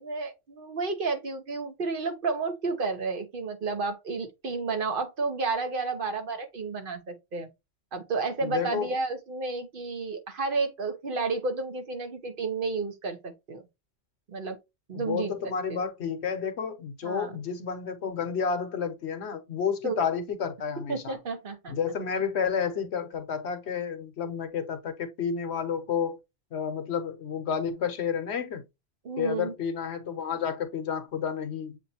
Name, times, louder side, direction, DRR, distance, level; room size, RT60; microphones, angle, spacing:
voice 1, 0.0-7.5 7.9-13.6 14.3-14.6 14.9-15.3 15.7-15.8 17.0-17.4 19.8-20.0 20.9-21.7 29.0-29.5, right 4 dB, 50° right, 1.1 m, -31 dB
voice 2, 8.4-8.9 14.9-21.2 21.7-26.2 26.5-28.6 29.2-31.8, left 7 dB, 65° left, 1.0 m, -30 dB
7.3 x 2.6 x 2.8 m
omnidirectional pair, 1.2 m